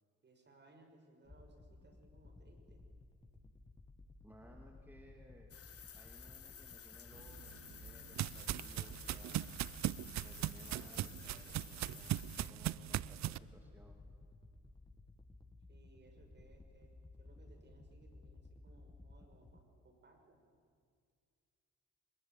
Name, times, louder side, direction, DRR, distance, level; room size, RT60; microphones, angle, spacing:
voice 1, 0.2-2.8 15.7-20.4, right 2 dB, 35° right, 4 dB, 5.8 m, -65 dB
sound 1, 1.3-19.6, left 2 dB, 15° left, 1.5 m, -57 dB
voice 2, 4.2-5.5 5.9-9.5 10.2-14.0, equal, 5° right, 1 dB, 2.7 m, -61 dB
sound 2, 5.5-12.5, left 8 dB, 50° left, 1.8 m, -55 dB
sound 3, 7.3-13.4, right 13 dB, 65° right, 0.6 m, -39 dB
24.0 x 21.0 x 9.2 m, 2.2 s
cardioid pair, 90°, 30 cm